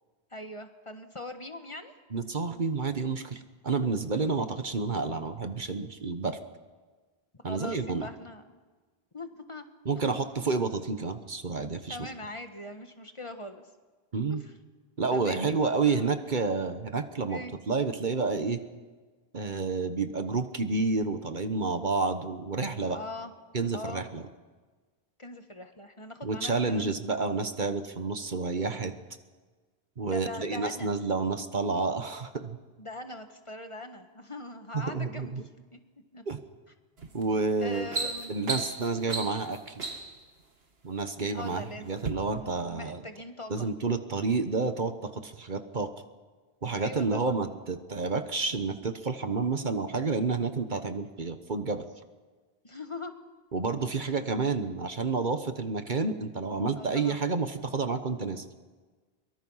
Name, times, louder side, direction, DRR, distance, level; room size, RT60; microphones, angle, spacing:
voice 1, 0.3-1.9 4.2-4.5 7.4-8.6 9.1-9.6 11.9-13.7 14.4-14.5 15.1-16.1 17.3-17.5 22.9-23.3 23.7-24.0 25.2-26.9 30.0-30.9 32.8-35.8 36.1-36.2 37.6-38.4 41.3-43.7 46.8-47.3 52.6-53.1 56.7-57.3, left 2 dB, 30° left, 7 dB, 1.4 m, -42 dB
voice 2, 2.1-6.4 7.4-8.1 9.8-12.0 14.1-14.4 15.0-17.4 17.7-18.6 19.3-23.0 23.5-24.2 26.2-28.9 30.0-32.6 34.7-35.4 36.3-36.4 37.1-37.9 38.3-39.8 40.8-43.0 43.5-45.9 46.6-51.8 53.5-58.4, right 4 dB, 50° right, 9 dB, 1.3 m, -30 dB
sound 1, 37.0-37.2 37.6-40.2 41.0-41.6 42.0-42.1, right 3 dB, 75° right, 2.1 m, -35 dB
23.5 x 23.5 x 5.7 m, 1.4 s
omnidirectional pair, 1.0 m